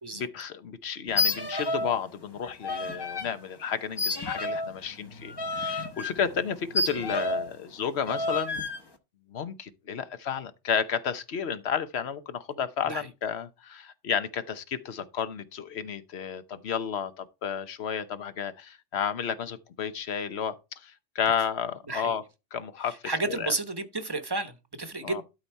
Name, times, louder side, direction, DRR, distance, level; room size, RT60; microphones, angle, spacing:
voice 1, 0.1-8.6 9.3-22.2 22.5-23.0 23.3-23.5 25.0-25.2, left 7 dB, 65° left, 1.1 m, -32 dB
sound 1, 1.1-2.0 2.2-3.3 4.0-7.5 8.1-8.8, left 2 dB, 25° left, 0.9 m, -30 dB
voice 2, 23.0-25.2, right 2 dB, 20° right, 0.9 m, -32 dB
12.0 x 4.1 x 4.5 m
omnidirectional pair, 1.2 m